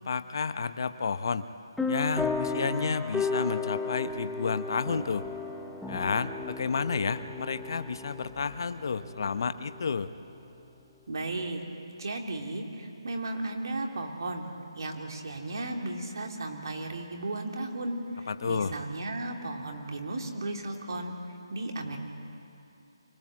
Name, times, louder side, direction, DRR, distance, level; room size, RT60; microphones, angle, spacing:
voice 1, 0.0-1.5 1.9-5.3 5.9-10.1 18.3-18.8, left 5 dB, 50° left, 11 dB, 0.9 m, -31 dB
sound 1, 1.8-9.9, left 3 dB, ahead, 0.8 m, -34 dB
voice 2, 11.1-11.6 12.0-14.5 14.8-21.2 21.5-22.0, right 2 dB, 55° right, 2 dB, 3.0 m, -35 dB
25.0 x 19.0 x 7.6 m, 2.7 s
figure-of-eight pair, 160°, 3 cm